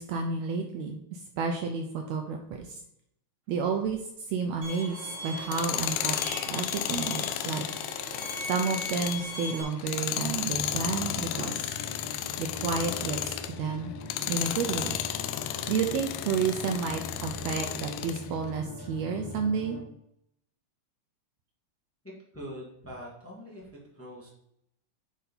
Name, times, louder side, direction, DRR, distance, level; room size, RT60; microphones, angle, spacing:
voice 1, 0.0-2.8 3.5-4.0 4.3-7.6 8.4-12.0 12.4-13.9 14.3-15.0 15.7-19.8, right 5 dB, 80° right, 4 dB, 1.7 m, -31 dB
Bowed string instrument, 4.6-9.6, left 1 dB, 45° right, 2.3 m, -39 dB
Tools, 5.4-13.6 14.0-18.2, left 12 dB, 90° left, 2.1 m, -33 dB
sound 1, 10.5-19.8, left 2 dB, 70° left, 0.9 m, -41 dB
voice 2, 22.3-24.3, equal, 5° left, -4 dB, 1.4 m, -43 dB
9.5 x 4.1 x 4.2 m, 0.74 s
omnidirectional pair, 3.5 m